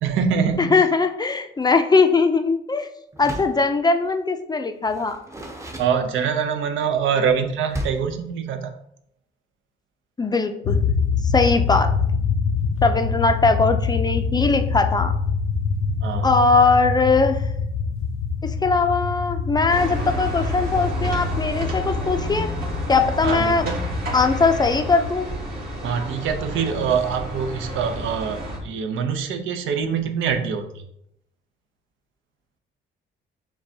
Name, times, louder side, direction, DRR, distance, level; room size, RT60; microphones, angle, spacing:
voice 1, 0.0-0.8 5.8-8.7 16.0-16.3 23.2-23.8 25.8-30.7, right 6 dB, 80° right, 7 dB, 0.6 m, -24 dB
voice 2, 0.6-2.9 3.2-5.2 10.2-10.8 11.3-11.9 12.8-15.1 16.2-17.4 18.4-22.5 22.9-23.7 24.1-25.3, left 4 dB, 20° left, 7 dB, 0.4 m, -20 dB
Door, 3.1-3.7 4.8-6.5 7.7-8.2, equal, 15° right, 0.7 m, -34 dB
sound 1, 10.6-25.1, left 5 dB, 85° left, 0.4 m, -25 dB
sound 2, 19.7-28.6, right 1 dB, 50° right, 1.6 m, -31 dB
6.7 x 2.2 x 2.7 m, 0.75 s
cardioid pair, 90°, 20 cm